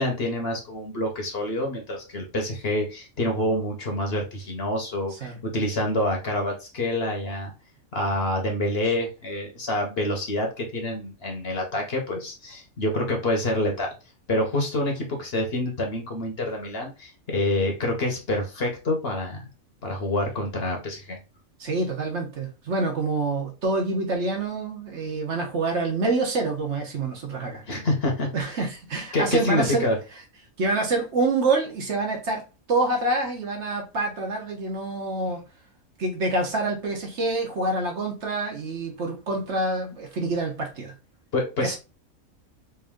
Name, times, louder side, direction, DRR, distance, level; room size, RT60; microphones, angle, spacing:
voice 1, 0.0-7.5 7.9-13.9 14.3-19.4 19.8-21.2 27.7-28.5 29.1-29.9 41.3-41.8, left 1 dB, 50° left, 1.0 m, -27 dB
voice 2, 21.6-27.6 28.3-29.9 30.6-35.4 36.0-40.9 41.6-41.8, right 2 dB, 55° right, 1.1 m, -26 dB
3.4 x 2.6 x 3.4 m
omnidirectional pair, 1.5 m